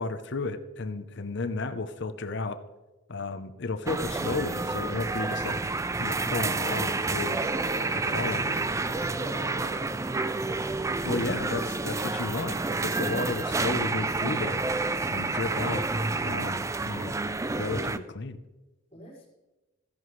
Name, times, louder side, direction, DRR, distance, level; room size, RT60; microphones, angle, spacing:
voice 1, 0.0-2.6 3.1-5.7 6.0-7.5 8.1-8.6 11.0-14.6 15.1-15.9 16.2-17.1 17.5-18.4, left 3 dB, 60° left, 9 dB, 0.8 m, -33 dB
sound 1, 3.9-18.0, right 3 dB, 15° right, 0.4 m, -29 dB
voice 2, 7.0-10.1 18.9-19.3, equal, 30° left, -4 dB, 4.9 m, -45 dB
15.0 x 11.0 x 3.2 m, 1.1 s
head